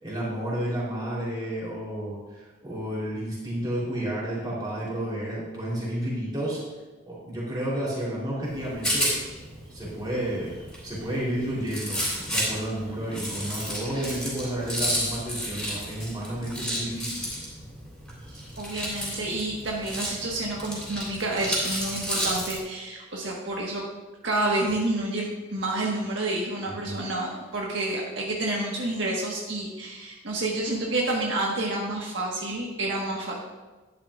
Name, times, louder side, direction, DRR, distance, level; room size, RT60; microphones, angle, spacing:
voice 1, 0.0-6.6 7.0-9.1 9.7-17.2 26.7-27.0, right 1 dB, 20° right, -6 dB, 3.6 m, -31 dB
Rattle, 8.4-22.6, equal, 5° left, 3.6 m, -32 dB
voice 2, 18.6-23.8 24.2-33.4, right 2 dB, 70° right, -3 dB, 1.5 m, -29 dB
12.0 x 10.5 x 2.5 m, 1.2 s
head